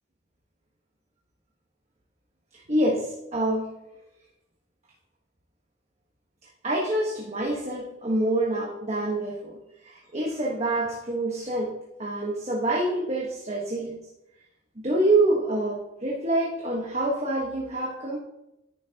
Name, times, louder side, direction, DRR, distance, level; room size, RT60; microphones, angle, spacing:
voice 1, 2.5-3.7 6.6-9.6 9.8-14.0 14.8-18.2, right 1 dB, 35° right, -3 dB, 1.4 m, -26 dB
10.5 x 10.0 x 2.9 m, 0.89 s
head